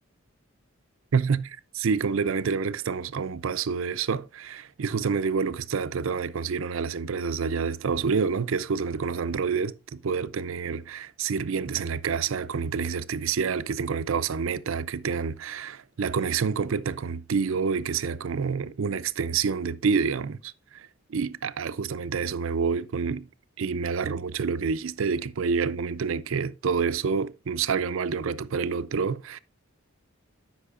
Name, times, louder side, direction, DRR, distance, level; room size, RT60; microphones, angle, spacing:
voice 1, 1.1-23.3 23.6-29.4, right 5 dB, 70° right, 0.5 m, -28 dB
13.0 x 5.9 x 2.4 m
head